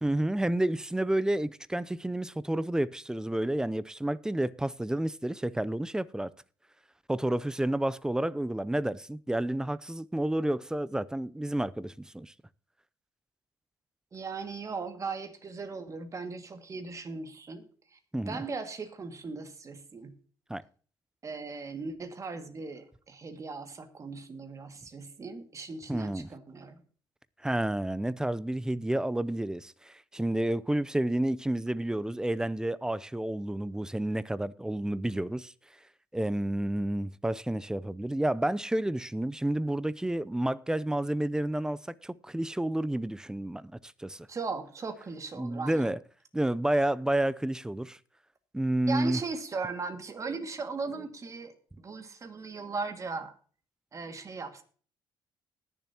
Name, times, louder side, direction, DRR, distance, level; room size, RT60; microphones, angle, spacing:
voice 1, 0.0-6.3 7.1-12.3 18.1-18.4 20.5-20.6 25.9-26.3 27.4-35.5 36.1-44.3 45.4-46.0 46.3-48.0 48.5-49.2, right 1 dB, 5° right, 0.5 m, -30 dB
voice 2, 14.1-17.7 17.9-18.0 18.3-20.1 21.2-26.8 44.3-45.9 48.9-53.3 53.9-54.6, right 4 dB, 35° right, 2.0 m, -38 dB
20.0 x 7.1 x 2.9 m
cardioid pair, 90°, 9 cm